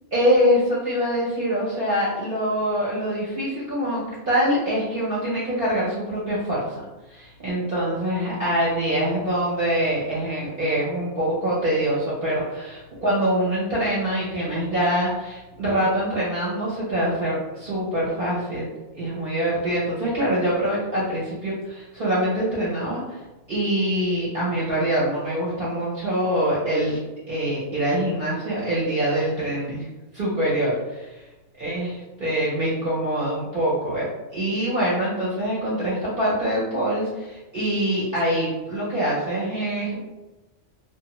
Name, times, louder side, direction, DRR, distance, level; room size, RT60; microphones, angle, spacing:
voice 1, 0.1-6.8 7.1-23.2 23.5-27.0 27.3-29.9 30.1-31.3 31.6-40.1, equal, 50° right, -8 dB, 0.8 m, -24 dB
2.5 x 2.2 x 2.9 m, 1.1 s
omnidirectional pair, 1.2 m